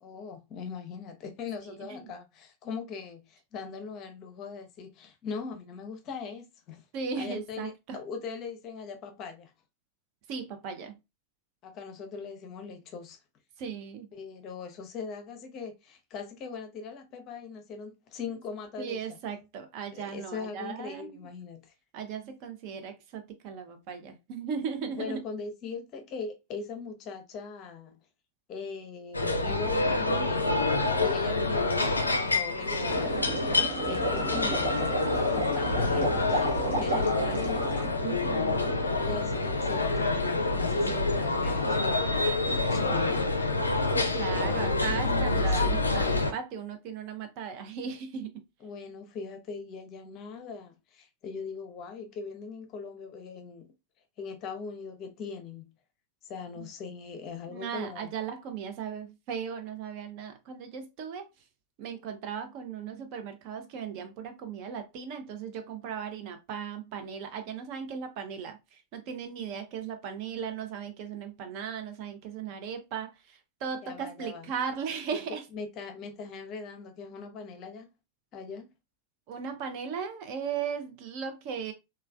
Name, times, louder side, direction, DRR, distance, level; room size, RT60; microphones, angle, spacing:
voice 1, 0.0-6.8 7.2-9.5 11.6-13.2 14.1-19.0 19.9-21.7 24.9-28.0 28.5-34.8 35.1-37.6 38.9-40.2 40.6-43.2 44.4-44.7 45.5-45.8 48.6-53.7 54.2-55.6 56.3-58.1 73.8-74.5 75.1-75.2 75.5-77.9 78.3-78.7, left 5 dB, 35° left, 0.6 m, -40 dB
voice 2, 1.6-2.1 6.9-8.0 10.3-11.0 13.6-14.1 18.8-21.3 21.9-25.2 30.8-31.2 38.0-38.8 43.9-48.3 56.6-56.7 57.5-61.3 61.8-75.4 79.3-81.7, right 7 dB, 45° right, 0.5 m, -37 dB
sound 1, 29.1-46.3, left 2 dB, 80° left, 0.4 m, -27 dB
sound 2, 32.9-37.9, right 3 dB, 60° right, 1.0 m, -33 dB
3.2 x 2.2 x 2.2 m
figure-of-eight pair, 90°, 0 cm